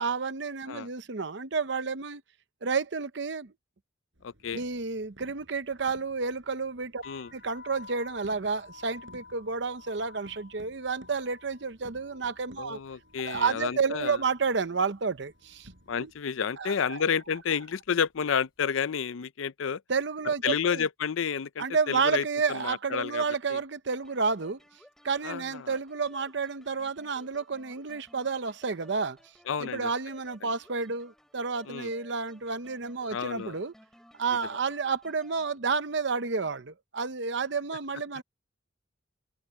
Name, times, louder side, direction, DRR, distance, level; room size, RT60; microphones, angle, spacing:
voice 1, 0.0-2.2 2.6-3.5 4.5-7.0 7.3-12.8 13.2-15.7 16.0-16.1 16.6-17.0 19.9-20.9 21.6-24.6 25.0-29.2 29.6-33.7 34.2-38.2, right 5 dB, 60° right, 0.7 m, -30 dB
sound 1, 4.1-16.2, right 1 dB, 75° right, 4.8 m, -57 dB
voice 2, 4.2-4.6 7.1-7.3 12.6-14.2 15.9-19.8 20.4-22.2 22.5-23.2 23.5-23.6 25.2-25.7 29.5-29.9 31.7-31.9 33.1-33.6, left 7 dB, 80° left, 0.5 m, -30 dB
sound 2, 7.0-14.9 15.2-15.8 16.5-16.7 17.0-18.5, left 4 dB, 50° left, 5.7 m, -52 dB
sound 3, 23.9-35.6, equal, ahead, 3.9 m, -58 dB
head